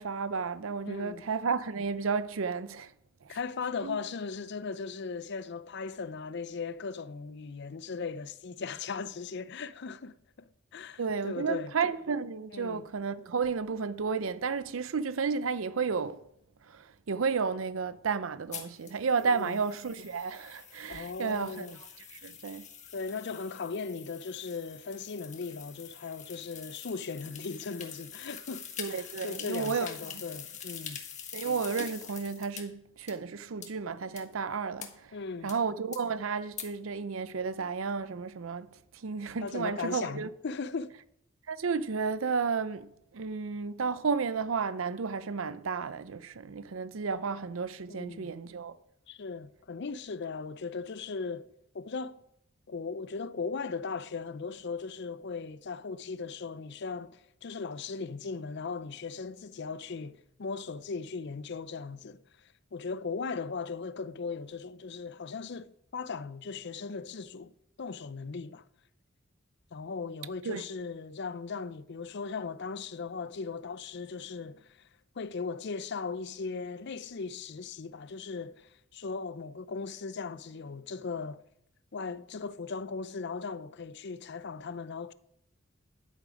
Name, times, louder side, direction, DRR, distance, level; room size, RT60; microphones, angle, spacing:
voice 1, 0.0-2.9 3.2-3.4 3.8-4.0 11.0-16.2 16.7-21.8 22.1-22.7 28.8-29.9 31.3-35.1 35.4-38.7 38.9-40.3 41.5-48.8 70.4-70.7, right 5 dB, 85° right, 0.6 m, -32 dB
voice 2, 0.9-1.2 3.3-11.7 12.5-12.8 19.2-19.6 20.9-21.8 22.9-31.0 35.1-35.5 39.4-40.9 47.9-48.3 49.1-51.5 51.7-52.2 52.7-68.6 69.7-74.9 75.1-81.4 81.9-85.1, left 4 dB, 60° left, 0.5 m, -38 dB
sound 1, 18.5-32.6 33.1-33.2 33.6-33.7 34.2-34.3 34.8-34.9 35.5-35.6 35.9-36.0 36.6-36.7, left 8 dB, 35° left, 1.5 m, -45 dB
11.0 x 8.4 x 5.2 m
head